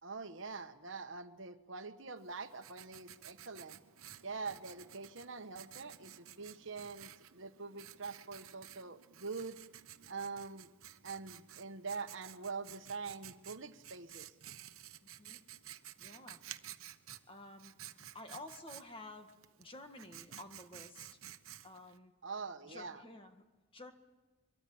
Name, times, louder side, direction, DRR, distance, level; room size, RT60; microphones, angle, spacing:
voice 1, 0.0-3.8 4.2-9.6 10.1-10.7 11.0-14.3 22.2-23.0, right 4 dB, 65° right, 9 dB, 1.2 m, -44 dB
Writing, 2.2-22.0, right 11 dB, 85° right, 1.0 m, -53 dB
voice 2, 15.0-15.6 16.0-16.4 17.3-19.3 19.6-21.2 21.6-22.1 22.6-23.4 23.7-23.9, left 2 dB, 25° left, 6 dB, 1.7 m, -52 dB
23.5 x 23.5 x 8.6 m, 1.2 s
head